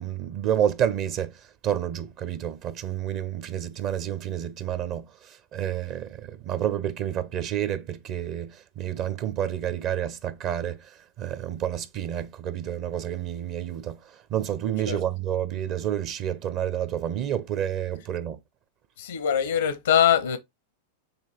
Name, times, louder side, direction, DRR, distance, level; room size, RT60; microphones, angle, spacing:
voice 1, 0.0-18.4, right 10 dB, 45° right, 0.9 m, -29 dB
voice 2, 19.0-20.4, left 9 dB, 90° left, 0.8 m, -22 dB
7.1 x 3.0 x 4.4 m
hypercardioid pair, 110°, 0 cm